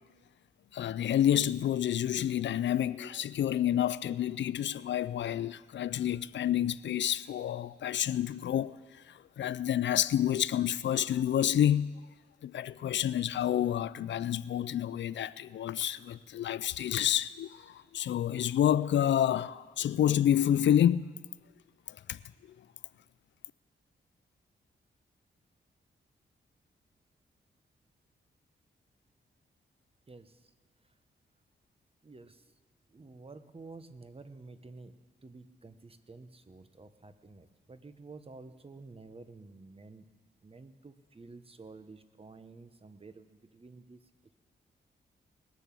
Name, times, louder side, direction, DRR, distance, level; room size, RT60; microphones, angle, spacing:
voice 1, 0.7-11.9 12.4-21.1 21.9-22.2, left 10 dB, 70° left, 0.4 m, -29 dB
voice 2, 30.1-30.5 30.8-30.9 32.0-32.5 32.9-40.1 40.4-44.1, right 3 dB, 30° right, 1.0 m, -51 dB
20.0 x 6.9 x 7.5 m
cardioid pair, 70°, 19 cm